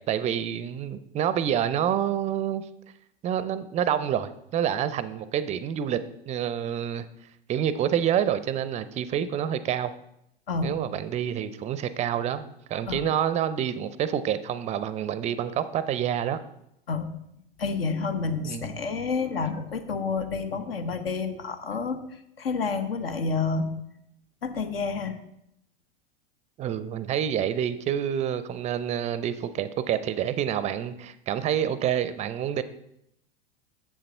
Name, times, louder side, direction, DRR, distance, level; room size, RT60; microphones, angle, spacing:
voice 1, 0.0-2.6 3.2-7.1 7.5-9.9 10.6-16.4 18.4-18.7 26.6-32.6, right 9 dB, 25° right, 14 dB, 0.5 m, -28 dB
voice 2, 17.6-22.0 22.4-23.7 24.4-25.2, left 4 dB, 70° left, 9 dB, 0.9 m, -29 dB
7.4 x 6.9 x 4.4 m, 0.78 s
figure-of-eight pair, 90°, 30 cm